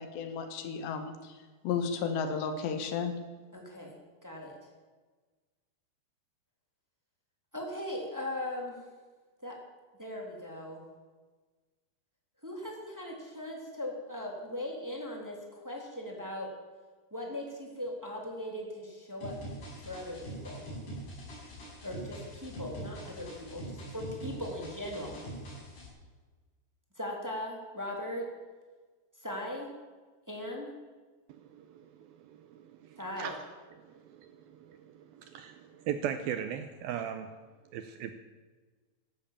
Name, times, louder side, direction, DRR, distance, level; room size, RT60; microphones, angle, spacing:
voice 1, 0.0-1.4 1.6-3.1, left 6 dB, 80° left, 7 dB, 3.7 m, -33 dB
voice 2, 3.5-3.9 4.2-4.6 7.5-8.8 9.4-9.5 10.0-10.8 12.4-16.5 17.1-19.3 19.8-20.6 21.8-25.2 27.0-28.2 29.2-29.7 30.3-30.7 33.0-33.3, left 1 dB, 5° right, -1 dB, 2.2 m, -39 dB
sound 1, 19.2-25.9, right 1 dB, 45° left, 7.4 m, -43 dB
voice 3, 31.3-33.4 33.9-37.3 37.7-38.1, right 9 dB, 75° right, 9 dB, 2.3 m, -39 dB
15.5 x 12.0 x 7.4 m, 1.4 s
omnidirectional pair, 5.0 m